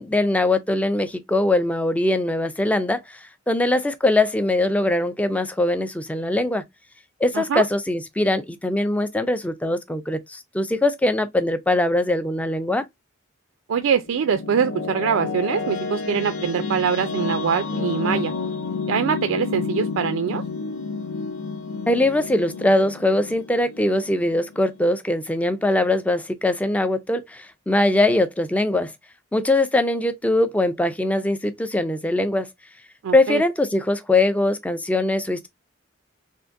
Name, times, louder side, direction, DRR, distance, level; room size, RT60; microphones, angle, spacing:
voice 1, 0.0-6.6 7.2-12.8 21.9-28.9 29.3-32.5 33.1-35.5, left 2 dB, 5° left, 0.3 m, -22 dB
voice 2, 13.7-18.3 18.9-20.4 33.0-33.4, right 7 dB, 75° right, 0.4 m, -23 dB
sound 1, 13.8-24.8, left 4 dB, 65° left, 0.5 m, -30 dB
3.6 x 2.5 x 2.5 m
head